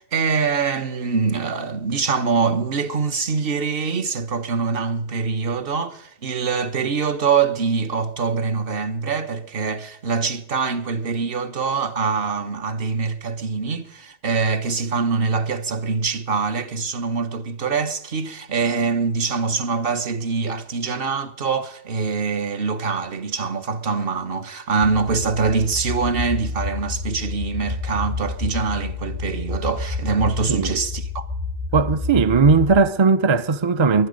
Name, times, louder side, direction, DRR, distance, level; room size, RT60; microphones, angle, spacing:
voice 1, 0.0-31.3, right 5 dB, 55° right, 1.2 m, -24 dB
sound 1, 24.8-32.8, left 3 dB, 75° right, 5.7 m, -29 dB
voice 2, 30.5-30.8 31.7-34.1, right 4 dB, 40° right, 0.4 m, -17 dB
23.5 x 9.4 x 5.1 m
omnidirectional pair, 1.2 m